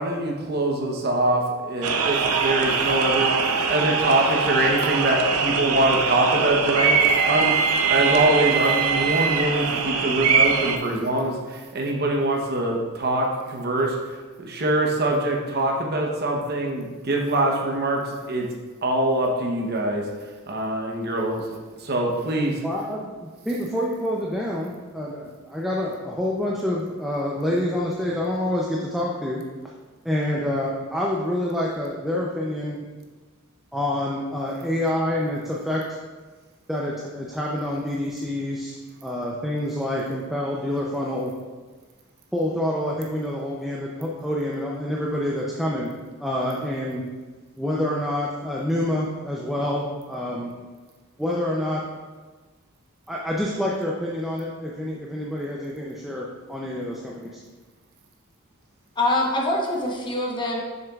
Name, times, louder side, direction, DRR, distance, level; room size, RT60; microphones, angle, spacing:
voice 1, 0.0-18.5 18.8-20.1 20.5-21.5 21.8-22.6, right 1 dB, 45° right, 1 dB, 0.8 m, -24 dB
sound 1, 1.8-10.8, right 5 dB, 85° right, 0.5 m, -22 dB
voice 2, 22.6-29.4 30.0-32.8 33.7-36.0 36.7-41.3 42.3-45.9 46.2-47.0 47.6-50.5 51.2-51.8 53.1-57.4, left 1 dB, ahead, -4 dB, 0.5 m, -27 dB
voice 3, 59.0-60.6, left 1 dB, 20° left, -1 dB, 0.9 m, -24 dB
6.9 x 6.6 x 2.4 m, 1.4 s
head